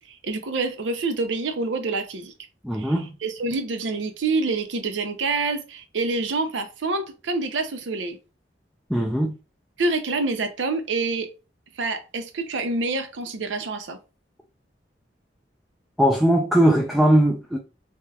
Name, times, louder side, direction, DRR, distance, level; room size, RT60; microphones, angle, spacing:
voice 1, 0.1-2.3 2.7-8.2 9.8-11.3 11.8-14.0, right 3 dB, 90° right, 0.6 m, -27 dB
voice 2, 2.6-3.1 8.9-9.4 16.0-17.6, right 1 dB, ahead, 0.3 m, -19 dB
3.2 x 2.9 x 2.3 m
head